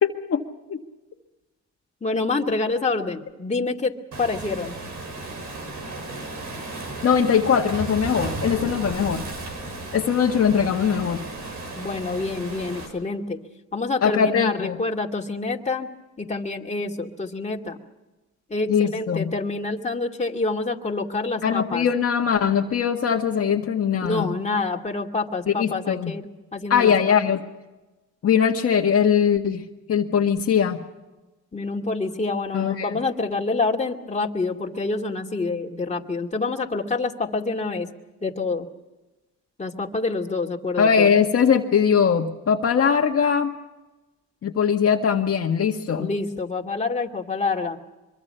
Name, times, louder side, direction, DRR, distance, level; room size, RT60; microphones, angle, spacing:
voice 1, 0.0-0.4 0.7-0.8 7.0-9.3 9.9-11.2 14.0-14.8 18.7-19.3 21.4-24.3 25.5-26.1 26.7-27.4 28.2-29.6 29.9-30.8 32.5-33.0 40.8-43.5 44.4-46.1, left 7 dB, 50° left, 1 dB, 1.8 m, -21 dB
voice 2, 2.0-4.7 11.8-13.4 13.7-15.9 16.2-17.8 18.5-21.9 24.0-27.1 31.5-37.9 38.2-38.7 39.6-41.1 46.0-47.8, left 3 dB, 25° left, 0 dB, 2.5 m, -27 dB
Waves surf, 4.1-12.9, right 2 dB, 70° right, 6.5 m, -34 dB
24.5 x 23.5 x 5.8 m, 1.1 s
cardioid pair, 90°, 30 cm